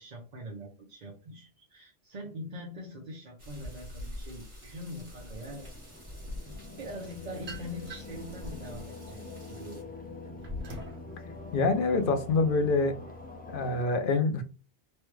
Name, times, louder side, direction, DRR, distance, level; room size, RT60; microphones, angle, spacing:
voice 1, 0.0-5.7 6.4-9.8, equal, 45° right, 0.7 m, -43 dB
sound 1, 3.4-9.8, left 1 dB, 30° right, 1.6 m, -46 dB
sound 2, 5.3-13.8, left 3 dB, 15° left, 0.3 m, -45 dB
sound 3, 6.9-8.3 8.8-11.1, left 1 dB, 70° right, 1.2 m, -43 dB
voice 2, 11.5-12.9 13.5-14.4, left 3 dB, 60° left, 0.7 m, -26 dB
3.2 x 2.3 x 3.1 m
omnidirectional pair, 1.1 m